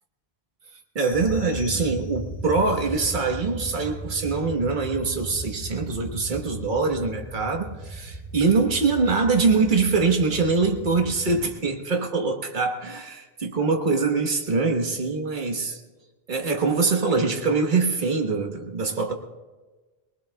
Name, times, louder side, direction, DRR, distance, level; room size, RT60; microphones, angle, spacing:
voice 1, 0.9-15.8 16.3-19.1, right 4 dB, 50° right, 3 dB, 1.4 m, -23 dB
sound 1, 1.0-2.5, left 11 dB, 10° right, 3.0 m, -46 dB
sound 2, 1.1-11.5, right 2 dB, 30° left, 3.2 m, -37 dB
23.0 x 19.5 x 2.3 m, 1.3 s
omnidirectional pair, 1.1 m